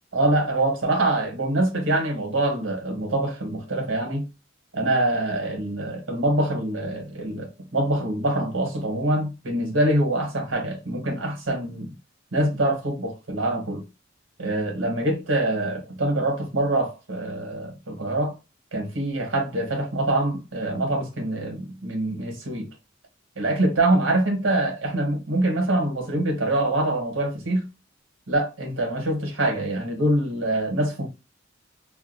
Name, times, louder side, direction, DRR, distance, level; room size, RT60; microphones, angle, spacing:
voice 1, 0.1-4.2 4.7-11.9 12.3-13.8 14.4-18.3 18.7-22.7 23.4-27.6 28.3-31.1, right 1 dB, 85° right, 1.2 m, -24 dB
2.6 x 2.2 x 2.5 m
head